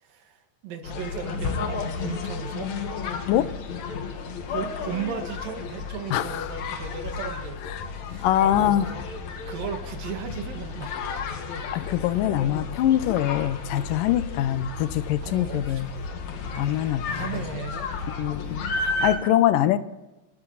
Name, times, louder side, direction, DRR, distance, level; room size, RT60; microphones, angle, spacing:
voice 1, 0.0-2.7 4.5-7.6 8.1-9.0 9.5-11.0 15.2-17.9, right 6 dB, 85° right, 6 dB, 3.5 m, -36 dB
sound 1, 0.8-19.2, left 4 dB, 60° left, 2.8 m, -33 dB
voice 2, 6.1-6.5 7.7-7.8 8.2-8.9 11.7-16.2 16.6-17.3 18.1-19.8, left 12 dB, 85° left, 13 dB, 2.5 m, -24 dB
27.0 x 13.0 x 4.1 m, 1.1 s
omnidirectional pair, 3.8 m